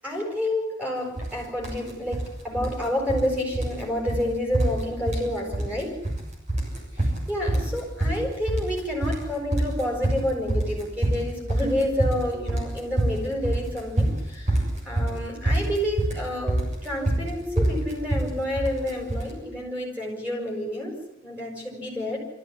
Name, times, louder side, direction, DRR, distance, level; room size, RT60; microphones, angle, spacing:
voice 1, 0.0-6.0 6.9-22.2, left 1 dB, 5° right, 0 dB, 7.7 m, -29 dB
sound 1, 1.2-1.3 1.6-2.3 2.6-3.3 3.5-3.8 4.1-4.2 4.5-5.3 5.5-6.2 6.5-19.3, right 1 dB, 35° right, 7.2 m, -25 dB
24.5 x 15.0 x 10.0 m, 0.82 s
head